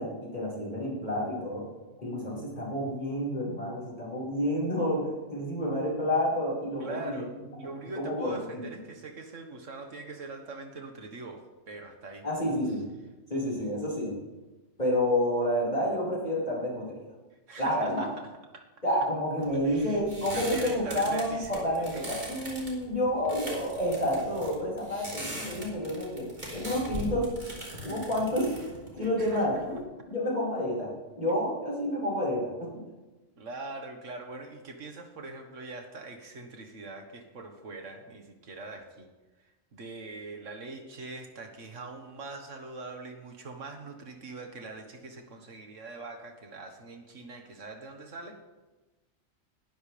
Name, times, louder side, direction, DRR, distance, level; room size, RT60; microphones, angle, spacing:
voice 1, 0.0-1.7 2.0-7.2 8.0-8.6 12.2-12.8 13.3-14.1 14.8-17.0 17.6-18.1 18.8-27.3 27.8-28.5 28.9-29.8 30.1-30.9 31.2-32.7, equal, 35° left, -5 dB, 5.1 m, -29 dB
voice 2, 6.8-7.3 7.6-12.3 17.5-18.1 18.5-18.7 19.6-21.6 21.9-22.1 29.0-29.8 33.4-39.1 39.7-48.4, right 3 dB, 80° right, 4 dB, 1.8 m, -42 dB
sound 1, 19.4-29.8, equal, 35° right, 3.4 m, -41 dB
19.5 x 13.0 x 3.4 m, 1.2 s
omnidirectional pair, 1.3 m